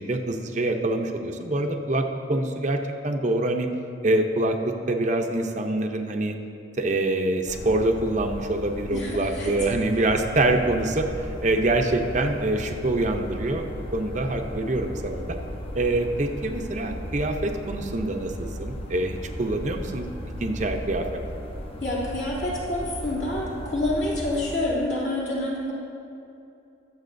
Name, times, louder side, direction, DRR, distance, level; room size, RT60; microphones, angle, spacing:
voice 1, 0.0-3.7 4.0-6.3 6.8-11.1 11.4-13.6 13.9-15.2 15.7-20.1 20.4-21.2, right 2 dB, 40° right, 4 dB, 0.6 m, -25 dB
sound 1, 7.5-24.6, equal, 30° left, 0.7 m, -36 dB
voice 2, 8.9-9.5 21.8-25.7, left 1 dB, 65° left, -7 dB, 2.7 m, -27 dB
21.0 x 7.1 x 2.6 m, 2.7 s
head